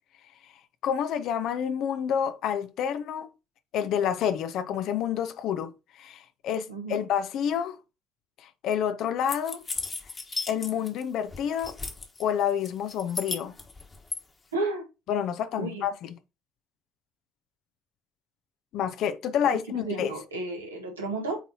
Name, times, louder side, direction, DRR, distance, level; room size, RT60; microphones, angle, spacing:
voice 1, 0.8-3.3 3.7-7.8 8.4-9.6 10.5-11.8 12.2-13.5 15.1-16.1 18.7-20.1, left 8 dB, 60° left, 0.6 m, -28 dB
voice 2, 6.7-7.0 14.5-14.8 15.6-15.8 19.8-21.4, right 2 dB, 90° right, 1.4 m, -32 dB
sound 1, 9.3-11.0 11.3-12.2 12.6-14.2, left 3 dB, 30° left, 1.3 m, -35 dB
8.1 x 4.0 x 2.8 m
hypercardioid pair, 50°, 0 cm